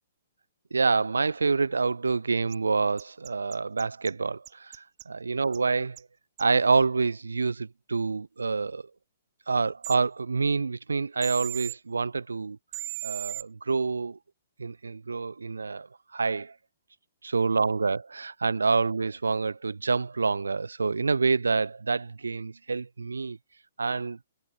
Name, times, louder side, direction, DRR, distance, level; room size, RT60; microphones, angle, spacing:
voice 1, 0.7-6.0 6.4-8.8 9.5-12.6 13.0-14.2 14.6-16.5 17.2-23.4 23.8-24.2, right 4 dB, 90° right, 6.3 m, -27 dB
sound 1, 2.5-2.6 3.0-4.1 4.5-5.0 5.5-5.6 6.0-6.1 6.4-6.5 9.8-10.0 11.2-11.8 12.7-13.4, right 27 dB, 40° right, 6.1 m, -36 dB
hypercardioid pair, 130°, 0 cm